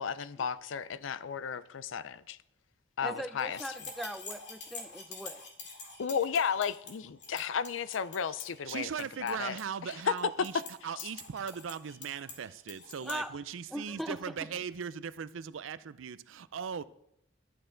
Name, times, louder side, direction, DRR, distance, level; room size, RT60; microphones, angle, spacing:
voice 1, 0.0-2.4 3.0-3.6 6.0-8.9 9.2-10.1 10.5-10.6 11.0-11.1, left 7 dB, 75° left, 0.5 m, -33 dB
voice 2, 3.0-5.4 13.0-13.4 13.7-14.3, equal, ahead, 0.5 m, -40 dB
sound 1, 3.4-13.2, left 4 dB, 60° left, 2.1 m, -47 dB
voice 3, 8.7-16.8, right 7 dB, 80° right, 0.4 m, -39 dB
12.0 x 8.7 x 3.9 m
head